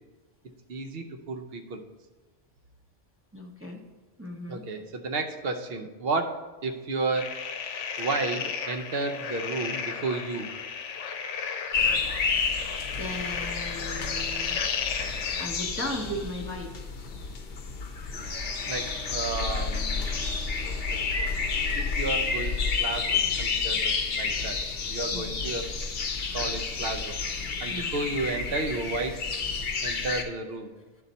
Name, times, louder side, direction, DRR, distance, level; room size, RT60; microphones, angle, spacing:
voice 1, 0.7-1.8 4.5-7.4 8.0-10.5 18.1-18.3 18.7-20.1 20.9-21.0 21.8-25.7 26.3-29.4 29.8-30.7, right 3 dB, 60° right, 6 dB, 0.9 m, -32 dB
voice 2, 3.3-3.8 4.2-4.6 13.0-14.6 15.4-16.7 25.1-25.4 27.7-28.0, equal, 15° right, -1 dB, 0.6 m, -36 dB
sound 1, 7.1-15.5, left 6 dB, 80° left, 1.0 m, -34 dB
sound 2, 11.7-30.2, left 5 dB, 60° left, 0.9 m, -30 dB
sound 3, 18.1-23.2, equal, 85° right, 1.2 m, -46 dB
10.5 x 4.0 x 4.1 m, 1.3 s
omnidirectional pair, 1.2 m